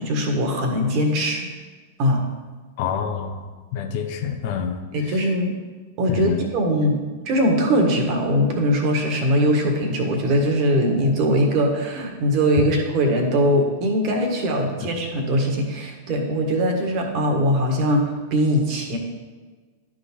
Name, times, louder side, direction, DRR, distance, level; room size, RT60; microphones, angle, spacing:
voice 1, 0.0-1.5 2.0-2.2 4.9-5.5 6.0-7.0 7.2-19.0, equal, 45° right, 2 dB, 1.6 m, -21 dB
voice 2, 2.8-3.4 3.7-5.3 6.1-6.4 12.6-12.7, left 7 dB, 55° left, 4 dB, 0.9 m, -27 dB
11.0 x 3.8 x 4.5 m, 1.4 s
figure-of-eight pair, 95°, 0 cm